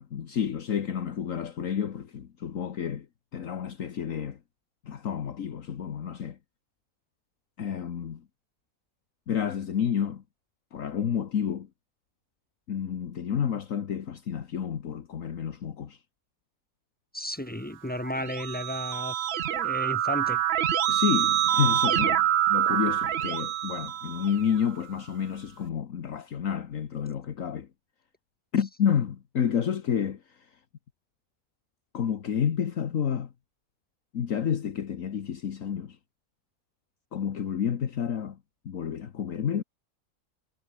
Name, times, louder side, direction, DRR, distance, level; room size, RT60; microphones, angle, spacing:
voice 1, 0.0-3.1 3.3-4.4 4.8-6.4 7.6-8.2 9.3-10.2 10.7-11.7 12.7-16.0 20.9-27.7 28.5-30.5 31.9-33.3 34.1-36.0 37.1-38.4 38.6-39.6, left 8 dB, 65° left, 1.5 m, -30 dB
voice 2, 17.1-20.4, left 1 dB, 5° left, 0.9 m, -34 dB
Keyboard (musical), 18.0-24.6, right 10 dB, 55° right, 0.7 m, -26 dB
omnidirectional pair, 1.5 m